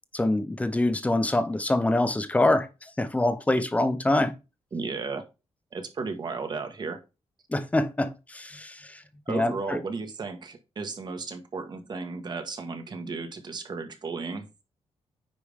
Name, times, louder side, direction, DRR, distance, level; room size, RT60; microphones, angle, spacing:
voice 1, 0.1-2.7 3.0-4.3 7.5-8.7 9.3-9.8, left 2 dB, 15° left, 0.9 m, -25 dB
voice 2, 4.7-5.2 5.7-7.0 9.3-14.5, right 4 dB, 40° right, 1.6 m, -34 dB
9.6 x 5.0 x 3.6 m
wide cardioid pair, 165°, 11 cm